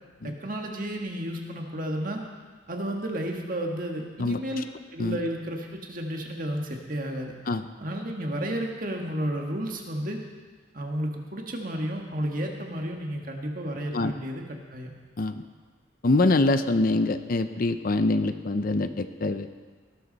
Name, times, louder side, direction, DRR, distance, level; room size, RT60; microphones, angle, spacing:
voice 1, 0.2-2.2 2.7-4.6 4.9-7.3 7.8-10.2 10.7-14.9, right 1 dB, 45° right, 2 dB, 1.7 m, -32 dB
voice 2, 16.0-19.5, left 2 dB, 45° left, 10 dB, 0.6 m, -24 dB
18.0 x 13.0 x 4.1 m, 1.4 s
head